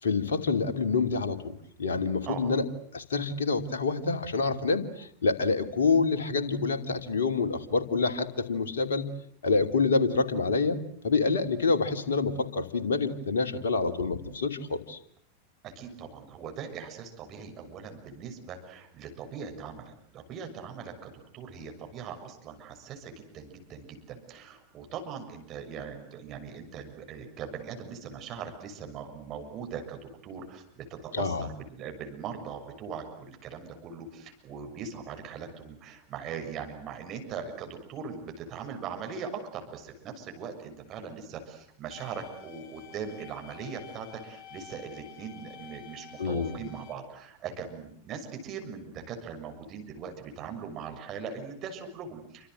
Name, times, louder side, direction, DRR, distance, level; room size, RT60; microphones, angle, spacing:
voice 1, 0.0-1.5 1.8-2.6 2.9-9.1 9.4-15.0 31.1-31.5 46.2-46.6, left 4 dB, 65° left, 6 dB, 2.9 m, -27 dB
voice 2, 15.6-52.5, right 6 dB, 35° right, 4 dB, 6.7 m, -40 dB
sound 1, 41.9-46.9, left 10 dB, 30° left, 6.8 m, -49 dB
29.0 x 26.0 x 7.9 m, 0.67 s
figure-of-eight pair, 90°, 0 cm